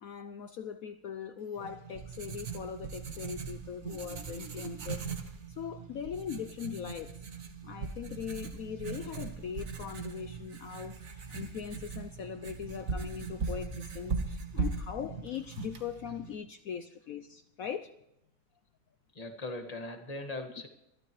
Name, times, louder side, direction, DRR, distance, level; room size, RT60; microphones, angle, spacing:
voice 1, 0.0-5.0 5.5-7.2 7.6-17.9, left 8 dB, 75° left, 0.8 m, -40 dB
Writing, 1.6-16.4, right 5 dB, 45° right, 1.6 m, -39 dB
voice 2, 19.1-20.7, left 2 dB, 20° left, 1.7 m, -39 dB
24.5 x 13.0 x 3.1 m
omnidirectional pair, 2.1 m